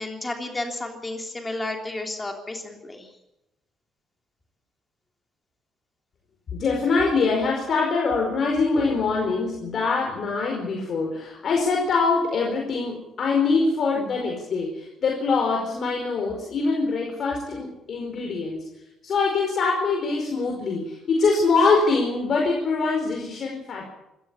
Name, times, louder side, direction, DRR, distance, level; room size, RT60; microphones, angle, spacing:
voice 1, 0.0-3.1, left 2 dB, 15° left, 3 dB, 3.3 m, -32 dB
voice 2, 6.5-18.7 19.0-23.9, left 4 dB, 50° left, 0 dB, 4.9 m, -24 dB
25.5 x 14.5 x 8.5 m, 0.90 s
cardioid pair, 130°, 0 cm